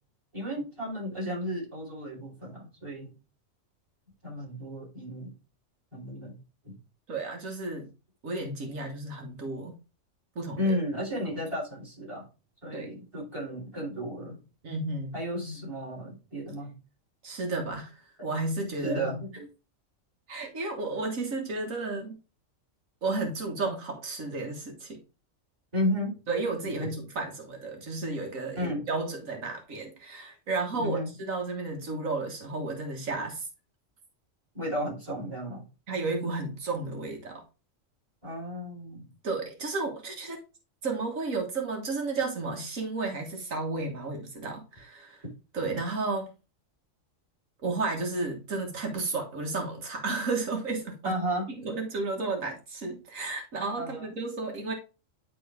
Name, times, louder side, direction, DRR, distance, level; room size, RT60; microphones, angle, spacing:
voice 1, 0.3-3.1 4.2-5.4 5.9-6.4 6.6-6.8 10.6-12.3 12.6-14.4 15.1-16.8 18.8-19.5 25.7-26.2 26.8-26.9 28.6-28.9 30.7-31.1 33.1-33.2 34.5-35.6 38.2-39.1 51.0-51.5 53.8-54.1, equal, 20° right, -3 dB, 4.4 m, -33 dB
voice 2, 7.1-7.9 8.2-9.8 10.4-10.7 12.7-12.9 14.6-15.2 17.2-18.0 18.2-19.1 20.3-22.2 23.0-25.0 26.3-33.5 35.9-37.4 39.2-40.4 40.8-45.2 45.5-46.3 47.6-51.2 51.6-54.7, right 3 dB, 85° right, 2 dB, 1.9 m, -32 dB
10.5 x 3.9 x 3.5 m, 0.30 s
omnidirectional pair, 1.3 m